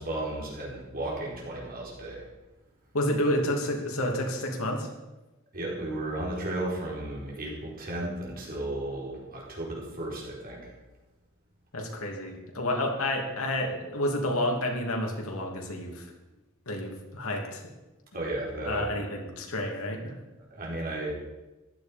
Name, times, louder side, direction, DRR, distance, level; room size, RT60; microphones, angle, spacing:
voice 1, 0.0-2.2 5.5-10.7 18.1-18.9 20.5-21.2, right 1 dB, 45° right, -3 dB, 4.6 m, -34 dB
voice 2, 2.9-4.9 11.7-16.1 16.7-17.6 18.6-20.2, left 1 dB, 75° left, 1 dB, 2.8 m, -30 dB
15.0 x 11.5 x 5.3 m, 1.1 s
head